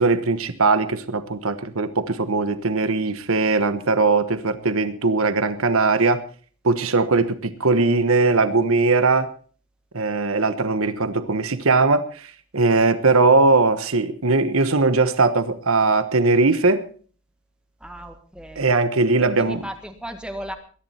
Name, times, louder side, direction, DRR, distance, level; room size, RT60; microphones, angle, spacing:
voice 1, 0.0-6.2 6.6-9.3 9.9-12.2 12.5-16.9 18.6-19.6, right 3 dB, 70° right, 12 dB, 1.2 m, -20 dB
voice 2, 17.8-18.7 19.2-20.6, equal, 5° right, 6 dB, 1.6 m, -36 dB
21.5 x 11.0 x 4.3 m, 0.41 s
head